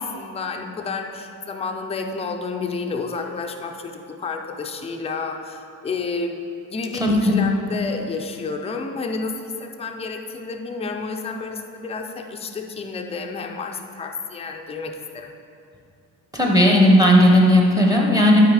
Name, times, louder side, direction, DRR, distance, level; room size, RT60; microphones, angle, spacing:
voice 1, 0.0-6.4 6.7-15.3, left 4 dB, 15° left, 3 dB, 0.4 m, -30 dB
voice 2, 7.0-7.4 16.3-18.4, equal, 10° right, -1 dB, 0.8 m, -15 dB
11.5 x 4.7 x 4.8 m, 2.6 s
wide cardioid pair, 175°, 39 cm